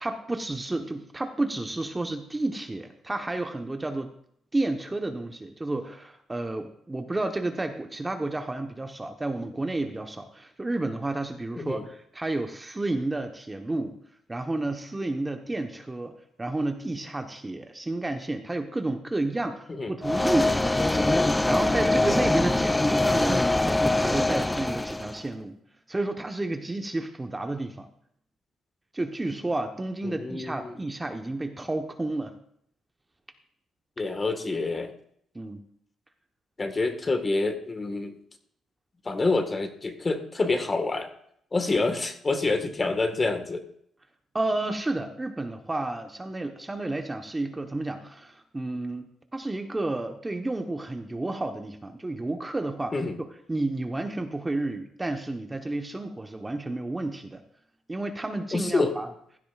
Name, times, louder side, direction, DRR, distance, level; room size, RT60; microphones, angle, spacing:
voice 1, 0.0-4.1 4.5-14.0 14.3-25.6 25.9-27.9 28.9-32.4 35.3-35.6 44.3-57.4 57.9-59.1, right 2 dB, 15° right, 5 dB, 1.0 m, -31 dB
sound 1, 20.0-25.2, left 2 dB, 10° left, 0.4 m, -23 dB
voice 2, 30.0-30.8 34.0-34.9 36.6-38.1 39.0-41.1 41.5-43.6 52.9-53.2 58.5-58.9, left 3 dB, 30° left, 7 dB, 1.5 m, -27 dB
15.5 x 12.0 x 2.4 m, 0.68 s
cardioid pair, 90°, 0 cm